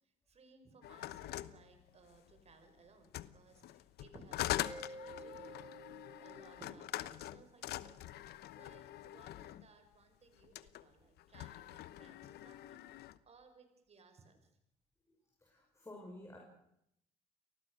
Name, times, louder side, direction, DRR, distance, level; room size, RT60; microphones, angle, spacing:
voice 1, 0.3-5.8 6.2-8.0 8.5-12.8 13.3-14.5, right 4 dB, 40° right, 7 dB, 5.7 m, -62 dB
sound 1, 0.8-2.4 3.0-9.7 10.4-10.8 11.2-13.2, left 14 dB, 75° left, 1.0 m, -43 dB
Mallet percussion, 4.6-7.2, right 1 dB, 15° right, 6.1 m, -52 dB
voice 2, 15.4-16.4, left 1 dB, 15° left, 0 dB, 5.7 m, -52 dB
29.0 x 19.5 x 6.5 m, 0.76 s
cardioid pair, 110°, 17 cm